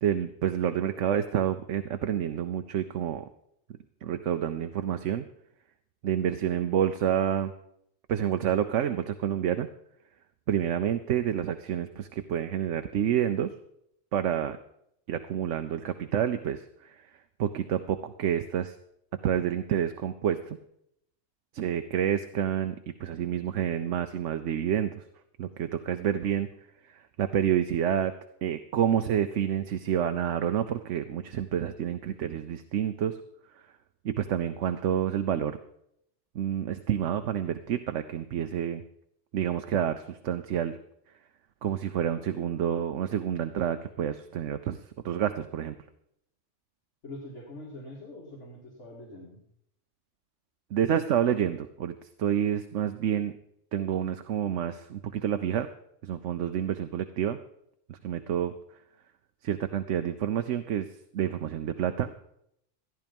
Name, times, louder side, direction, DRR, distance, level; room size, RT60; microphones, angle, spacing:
voice 1, 0.0-3.3 4.0-5.3 6.0-7.5 8.1-9.7 10.5-13.5 14.1-14.6 15.1-17.0 17.4-18.8 19.2-20.6 21.5-25.0 25.4-26.5 26.9-28.1 28.4-33.2 34.0-35.6 36.3-38.8 39.3-40.8 41.6-44.8 45.0-45.8 50.7-53.3 53.7-55.7 56.0-57.4 57.9-58.5 59.4-60.9 61.1-62.3, right 9 dB, 90° right, 8 dB, 1.1 m, -28 dB
voice 2, 6.1-6.4 47.0-49.4, left 1 dB, 75° left, -3 dB, 2.5 m, -44 dB
14.5 x 10.5 x 5.3 m, 0.73 s
omnidirectional pair, 1.2 m